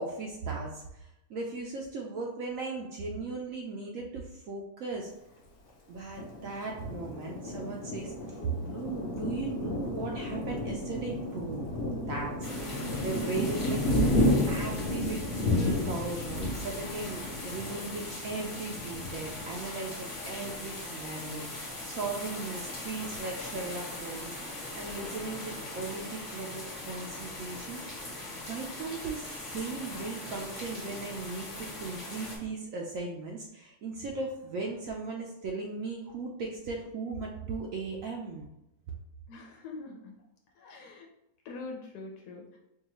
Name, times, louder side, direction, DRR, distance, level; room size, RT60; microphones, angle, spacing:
voice 1, 0.0-5.1 5.9-11.7 12.1-27.8 28.5-38.5, right 3 dB, 70° right, -1 dB, 0.8 m, -38 dB
Thunder, 6.1-20.5 21.0-21.1 21.4-22.0, left 1 dB, 60° left, 0.9 m, -32 dB
sound 1, 12.4-32.4, left 2 dB, 35° left, 1.0 m, -41 dB
voice 2, 39.3-40.2 40.5-41.1 41.4-42.6, left 3 dB, 85° left, -1 dB, 1.2 m, -43 dB
4.7 x 2.3 x 2.9 m, 0.87 s
omnidirectional pair, 1.6 m